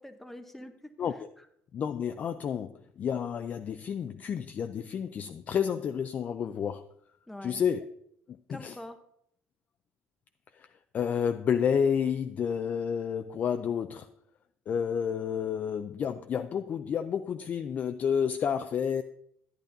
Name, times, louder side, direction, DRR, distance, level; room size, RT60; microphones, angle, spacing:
voice 1, 0.0-1.5 7.3-7.6 8.5-9.0, left 1 dB, 5° left, 8 dB, 0.7 m, -45 dB
voice 2, 1.7-6.8 7.4-7.9 8.5-8.7 10.9-14.1 14.7-19.0, left 7 dB, 40° left, 8 dB, 0.3 m, -30 dB
11.0 x 10.0 x 2.6 m, 0.73 s
cardioid pair, 140°, 4 cm